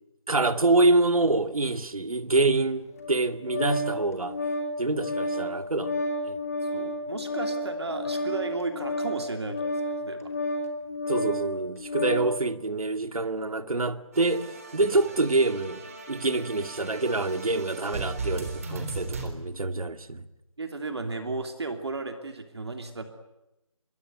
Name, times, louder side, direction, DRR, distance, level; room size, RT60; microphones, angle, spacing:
voice 1, 0.3-4.4 4.8-6.4 11.1-15.8 16.1-20.2, right 2 dB, 85° right, 2.4 m, -26 dB
Organ, 3.0-12.4, left 1 dB, 25° left, 2.5 m, -31 dB
voice 2, 6.7-10.3 14.9-15.0 20.6-23.0, right 3 dB, 50° right, 2.9 m, -34 dB
sound 1, 14.1-19.3, right 3 dB, 25° right, 3.8 m, -37 dB
26.0 x 23.5 x 9.6 m
figure-of-eight pair, 175°, 18 cm